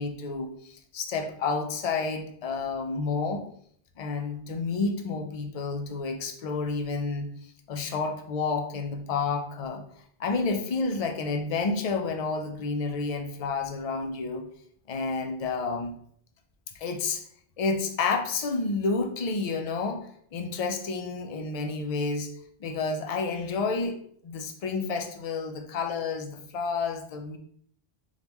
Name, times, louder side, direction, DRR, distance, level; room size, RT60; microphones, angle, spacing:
voice 1, 0.0-3.4 4.0-9.8 10.2-14.4 14.9-15.9 16.7-17.2 17.6-22.3 22.6-24.0 24.2-27.4, left 4 dB, 45° left, 4 dB, 0.5 m, -30 dB
4.0 x 3.5 x 3.0 m, 0.63 s
omnidirectional pair, 1.0 m